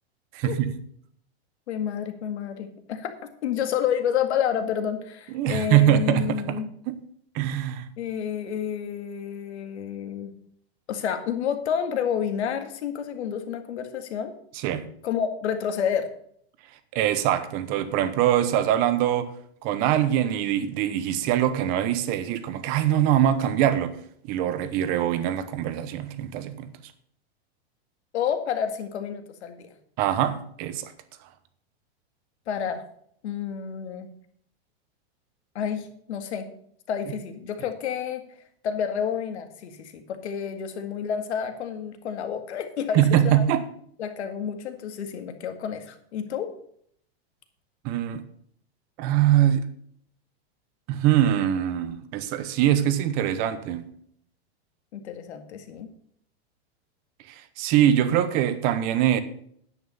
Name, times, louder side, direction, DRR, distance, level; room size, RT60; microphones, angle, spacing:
voice 1, 0.3-0.7 5.3-6.6 6.9-7.0 7.3-7.9 14.6-14.8 16.9-19.3 19.6-24.0 24.2-26.7 30.0-30.9 42.9-43.7 47.8-48.2 49.0-49.7 50.9-53.9 57.6-59.2, right 11 dB, 30° right, 0.9 m, -23 dB
voice 2, 1.7-6.7 8.0-10.3 10.9-14.3 15.0-16.1 28.1-29.7 32.5-32.8 33.2-34.1 35.6-36.5 36.9-38.2 38.6-43.5 44.0-46.5 54.9-55.9, left 8 dB, 90° left, 2.1 m, -29 dB
9.8 x 9.2 x 5.5 m
supercardioid pair, 175°, 32 cm